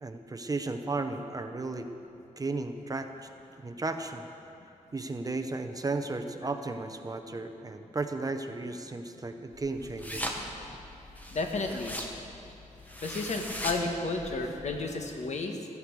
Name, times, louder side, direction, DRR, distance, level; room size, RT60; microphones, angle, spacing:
voice 1, 0.0-1.9 2.4-3.3 3.6-4.3 4.9-10.2 11.7-11.8, right 3 dB, 25° right, 7 dB, 0.7 m, -34 dB
sound 1, 9.5-14.8, equal, 10° left, 1.4 m, -40 dB
voice 2, 11.3-12.0 13.0-15.6, left 3 dB, 60° left, 3 dB, 1.4 m, -32 dB
15.0 x 13.5 x 4.8 m, 2.9 s
wide cardioid pair, 120°, 13 cm